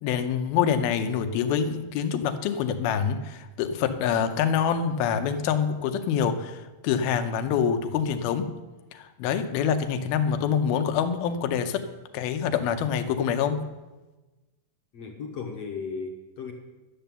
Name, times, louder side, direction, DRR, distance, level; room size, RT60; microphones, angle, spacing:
voice 1, 0.0-8.5 8.9-11.8 12.1-13.6, left 7 dB, 90° left, 8 dB, 2.7 m, -26 dB
voice 2, 14.9-16.5, left 5 dB, 65° left, 2 dB, 1.6 m, -35 dB
11.5 x 6.8 x 8.8 m, 1.2 s
omnidirectional pair, 4.2 m